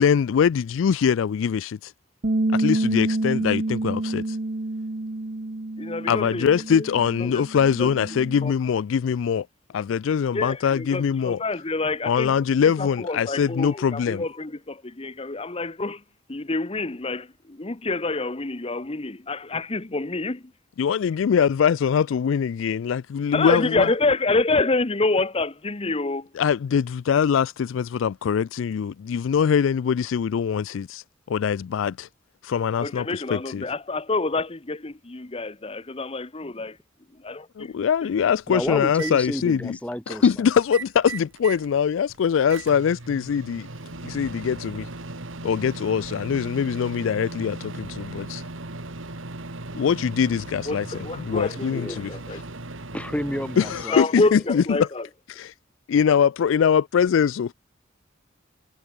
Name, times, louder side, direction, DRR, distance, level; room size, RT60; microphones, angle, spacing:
voice 1, 0.0-1.9 2.5-4.4 6.1-9.5 9.7-11.4 12.1-14.3 20.8-23.9 26.3-32.1 32.4-33.7 37.6-39.8 40.1-43.7 44.0-44.9 45.4-48.4 49.7-52.4 53.6-54.9 55.3-55.5 55.9-57.5, left 7 dB, 70° left, 0.3 m, -23 dB
Bass guitar, 2.2-8.5, right 2 dB, 45° right, 0.9 m, -28 dB
voice 2, 5.8-6.8 7.2-7.4 7.8-7.9 8.4-8.5 10.3-12.3 12.6-16.0 16.3-20.4 23.3-26.3 32.8-36.8 37.2-37.7 50.7-52.4 53.9-55.0, left 3 dB, 30° left, 1.0 m, -27 dB
Microwave oven, 37.6-37.7 38.2-39.1 40.6-41.7 42.1-53.8, right 2 dB, 75° right, 2.4 m, -37 dB
voice 3, 38.5-40.3 51.7-52.0 52.9-54.0, equal, 5° left, 2.2 m, -30 dB
head